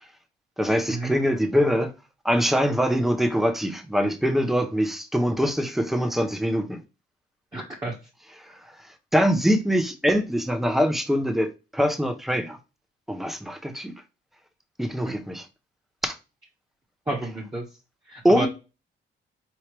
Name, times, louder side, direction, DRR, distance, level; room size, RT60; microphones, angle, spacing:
voice 1, 0.6-1.9 2.2-6.8 8.4-12.6 13.1-13.9 14.8-15.5 16.0-16.2 18.2-18.5, equal, ahead, 0.8 m, -23 dB
voice 2, 7.5-8.0 15.0-15.1 17.1-17.6 18.1-18.5, right 2 dB, 20° right, 1.4 m, -30 dB
4.7 x 3.0 x 3.3 m
cardioid pair, 90°, 20 cm